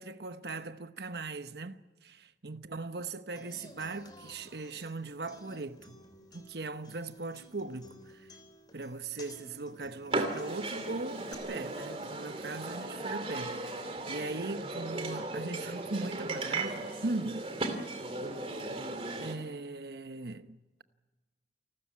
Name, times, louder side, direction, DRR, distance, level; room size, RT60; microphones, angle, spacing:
voice 1, 0.0-6.0 6.3-8.3 8.7-17.5 18.8-20.8, right 3 dB, 65° right, 1.0 m, -39 dB
Human voice / Acoustic guitar, 3.4-11.3, left 1 dB, 25° left, 3.3 m, -55 dB
sound 1, 10.1-19.4, right 2 dB, 35° right, 2.6 m, -36 dB
29.0 x 13.5 x 9.7 m
head